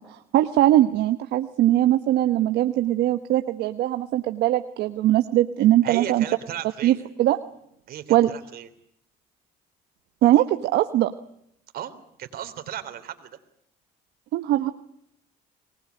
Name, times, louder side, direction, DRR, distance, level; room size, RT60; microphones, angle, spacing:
voice 1, 0.3-6.2 6.8-7.4 8.1-8.3 10.2-11.1 14.3-14.7, right 14 dB, 80° right, 9 dB, 1.2 m, -20 dB
voice 2, 5.8-7.1 7.9-8.7 11.7-11.9 12.2-13.4, right 10 dB, 65° right, 9 dB, 3.4 m, -35 dB
24.5 x 19.5 x 9.5 m, 0.75 s
cardioid pair, 110°, 17 cm